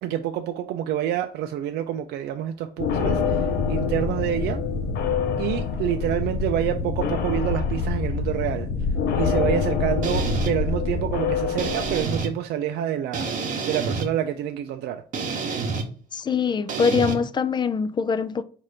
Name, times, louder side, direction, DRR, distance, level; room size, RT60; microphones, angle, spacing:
voice 1, 0.0-4.6 5.4-8.7 9.1-15.0, right 11 dB, 75° right, 0.4 m, -27 dB
sound 1, 2.8-12.3, left 5 dB, 70° left, 0.7 m, -25 dB
sound 2, 10.0-10.5 11.6-12.3 13.1-14.1 15.1-15.9 16.7-17.1, right 4 dB, 50° right, 0.9 m, -28 dB
voice 2, 16.1-18.4, left 5 dB, 25° left, 0.3 m, -23 dB
4.2 x 2.6 x 4.8 m
cardioid pair, 110°, 17 cm